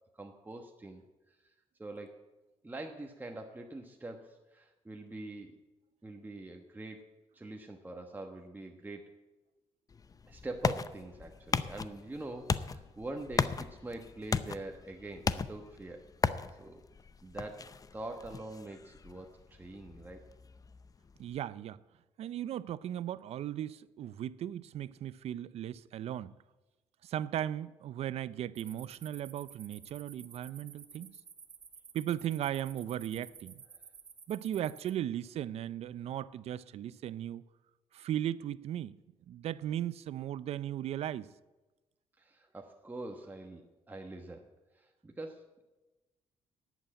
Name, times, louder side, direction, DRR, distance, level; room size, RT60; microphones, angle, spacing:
voice 1, 0.1-1.0 1.3-1.5 1.8-2.3 2.6-5.6 6.0-7.1 7.3-9.1 10.3-16.0 16.6-16.8 17.2-20.2 42.2-44.5 44.7-45.6, right 2 dB, 15° right, 1.2 m, -44 dB
sound 1, 9.9-21.4, left 5 dB, 35° left, 0.6 m, -37 dB
voice 2, 21.2-21.8 22.2-26.4 27.0-31.2 31.9-33.6 34.3-37.4 37.9-39.0 39.3-41.3, right 11 dB, 70° right, 0.5 m, -37 dB
sound 2, 28.5-34.9, right 6 dB, 45° right, 1.2 m, -53 dB
11.0 x 8.3 x 8.9 m
cardioid pair, 80°, 11 cm